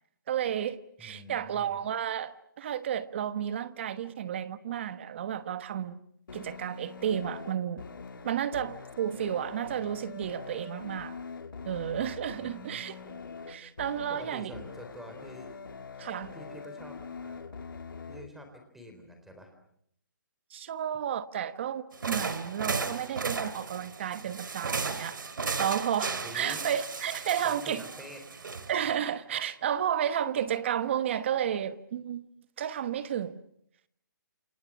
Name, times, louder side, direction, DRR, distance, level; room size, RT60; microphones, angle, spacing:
voice 1, 0.3-6.0 6.3-7.8 8.2-11.2 11.6-12.9 13.5-14.5 16.0-16.3 20.5-25.2 25.6-27.8 28.7-32.2 32.6-33.4, right 9 dB, 35° right, 1.2 m, -32 dB
voice 2, 1.0-1.8 12.4-12.9 14.1-15.7 16.3-17.4 18.1-19.5 26.2-26.7 27.4-28.2, equal, ahead, 3.8 m, -46 dB
sound 1, 6.3-18.3, left 5 dB, 80° left, 2.5 m, -44 dB
sound 2, 21.9-28.9, right 4 dB, 75° right, 3.1 m, -35 dB
28.5 x 28.5 x 6.2 m
hypercardioid pair, 165°, 11 cm